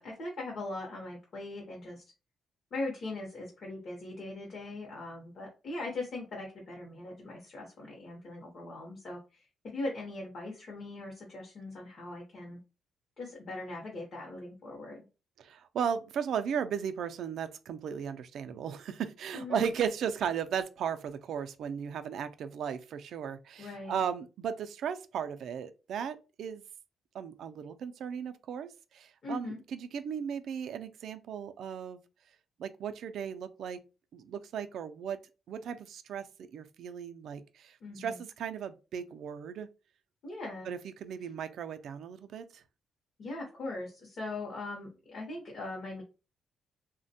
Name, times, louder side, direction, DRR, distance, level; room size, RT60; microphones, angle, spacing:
voice 1, 0.0-2.0 2.7-12.6 13.2-15.1 19.3-19.7 23.6-24.0 29.2-29.6 37.8-38.2 40.2-40.7 43.2-46.0, left 2 dB, 40° left, 0.7 m, -40 dB
voice 2, 15.4-26.6 27.1-32.0 32.6-33.8 34.1-35.2 35.5-36.3 36.5-39.7 40.7-42.6, right 7 dB, 60° right, 0.3 m, -36 dB
3.2 x 2.1 x 2.7 m
cardioid pair, 165°, 0 cm